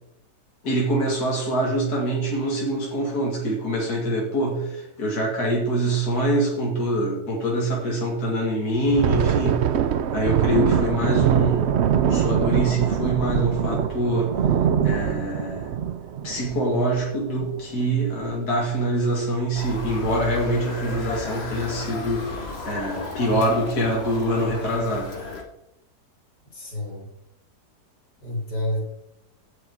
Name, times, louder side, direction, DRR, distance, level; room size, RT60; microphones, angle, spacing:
voice 1, 0.6-9.7 10.1-14.4 14.8-15.7 16.2-25.1, right 1 dB, 70° left, -3 dB, 2.9 m, -24 dB
Thunder, 8.8-17.8 18.2-18.4 18.8-19.0 19.6-20.1, right 8 dB, 60° right, 0.7 m, -23 dB
Motor vehicle (road) / Siren, 19.5-25.4, left 4 dB, 40° left, 2.1 m, -34 dB
voice 2, 26.5-27.1 28.2-28.9, left 1 dB, 85° left, 0 dB, 3.8 m, -29 dB
16.0 x 6.3 x 4.8 m, 0.85 s
omnidirectional pair, 1.7 m